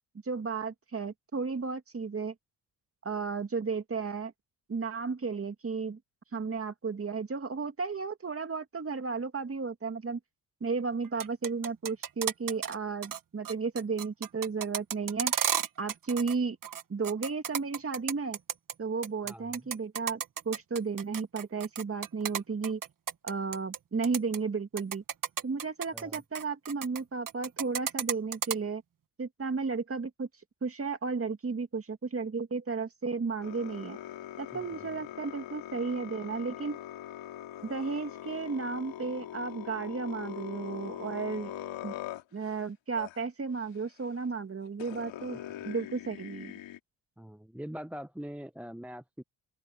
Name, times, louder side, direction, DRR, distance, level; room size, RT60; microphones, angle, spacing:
voice 1, 0.2-2.3 3.0-4.3 4.7-6.0 6.3-10.2 10.6-15.3 15.8-16.6 16.9-18.4 18.8-22.8 23.2-25.0 25.4-28.8 29.2-30.3 30.6-34.0 34.4-36.8 37.6-41.5 41.8-41.9 42.3-45.4 45.6-46.5, right 4 dB, 30° right, 2.3 m, -33 dB
sound 1, 11.0-12.7 13.0-13.2 13.4-16.3 16.6-18.7 19.0-23.8 24.0-24.4 24.8-27.0 27.3-28.6, right 8 dB, 45° right, 1.4 m, -33 dB
sound 2, 33.4-42.5 43.0-43.2 44.2-44.3 44.8-46.8, left 12 dB, 85° left, 3.3 m, -42 dB
voice 2, 34.5-34.9 45.5-45.6 47.2-49.2, equal, 5° right, 0.8 m, -43 dB
open air
cardioid pair, 85°, 44 cm